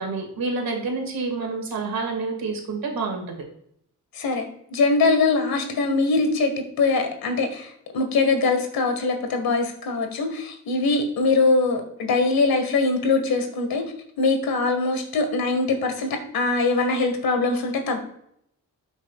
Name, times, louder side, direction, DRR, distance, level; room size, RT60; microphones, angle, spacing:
voice 1, 0.0-3.4, right 3 dB, 75° right, 3 dB, 2.3 m, -28 dB
voice 2, 4.1-6.5 6.8-13.8 14.2-18.0, left 3 dB, 85° left, 5 dB, 1.9 m, -22 dB
12.5 x 6.1 x 2.4 m, 0.71 s
cardioid pair, 75°, 35 cm